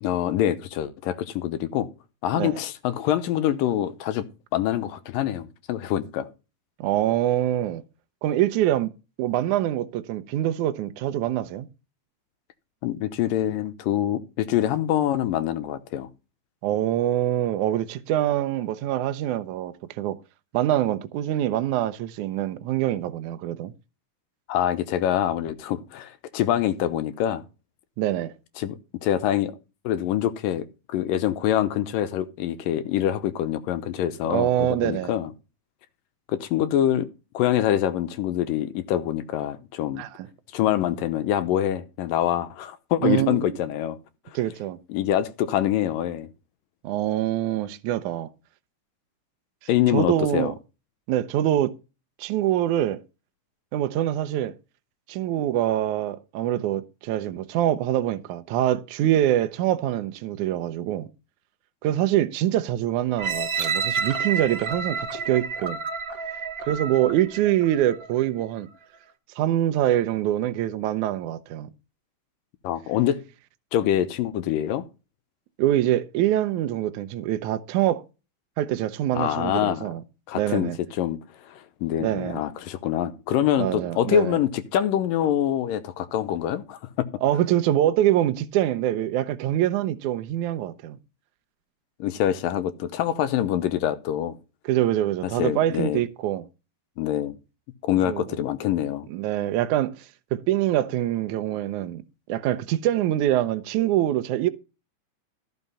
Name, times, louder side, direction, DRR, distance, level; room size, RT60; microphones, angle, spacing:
voice 1, 0.0-1.9 2.2-4.3 4.5-6.3 12.8-16.1 24.5-27.4 28.6-29.5 29.8-35.3 36.3-37.1 37.3-40.0 40.5-44.0 44.9-46.3 49.7-50.5 72.6-73.2 73.7-74.8 79.2-79.8 80.3-87.1 92.0-94.4 95.4-96.0 97.0-97.4 97.8-99.1, left 11 dB, 75° left, 2.3 m, -25 dB
voice 2, 6.8-7.8 8.2-8.9 9.2-11.7 16.6-20.2 20.5-23.7 28.0-28.3 34.3-35.1 40.0-40.3 43.0-43.6 44.4-44.8 46.8-48.3 49.9-50.5 51.1-51.7 52.2-53.0 53.7-54.5 55.1-61.1 61.8-65.8 66.6-68.7 69.4-71.7 75.6-78.0 78.6-80.0 80.3-80.8 82.0-82.4 83.6-84.4 87.2-91.0 94.7-96.5 98.0-98.4 99.1-100.1 100.5-102.0 102.3-104.5, right 12 dB, 75° right, 1.8 m, -24 dB
sound 1, 63.2-68.1 68.7-68.8, right 6 dB, 50° right, 1.1 m, -30 dB
14.5 x 5.8 x 5.5 m
omnidirectional pair, 4.4 m